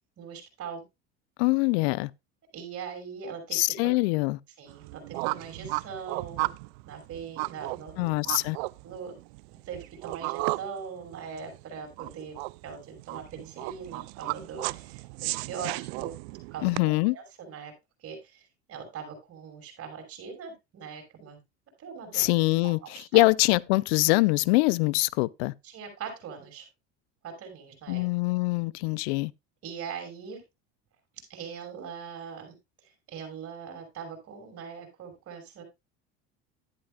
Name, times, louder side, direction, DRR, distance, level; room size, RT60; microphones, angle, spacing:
voice 1, 0.2-0.8 2.5-3.9 4.6-6.5 6.8-8.1 8.8-9.1 9.5-12.4 12.6-16.8 17.1-17.7 18.0-18.4 18.7-21.4 21.8-22.3 22.6-23.2 25.6-26.7 27.2-28.0 29.6-30.4 31.1-32.5 32.8-35.6, right 6 dB, 45° right, 6.0 m, -41 dB
voice 2, 1.4-2.1 3.5-4.4 8.0-8.6 16.6-17.2 22.1-25.5 27.9-29.3, left 23 dB, 80° left, 0.5 m, -24 dB
sound 1, 4.7-16.8, right 25 dB, 75° right, 0.5 m, -35 dB
12.5 x 10.5 x 2.4 m
supercardioid pair, 105°, 32 cm